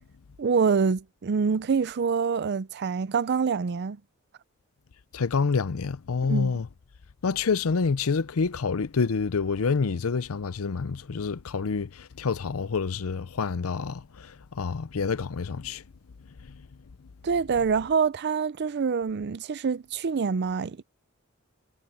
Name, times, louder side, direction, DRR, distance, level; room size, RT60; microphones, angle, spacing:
voice 1, 0.4-4.0 6.3-6.6 17.2-20.8, right 5 dB, 50° right, 0.5 m, -26 dB
voice 2, 5.1-6.7 7.2-14.0 14.6-15.8, left 5 dB, 90° left, 0.6 m, -27 dB
head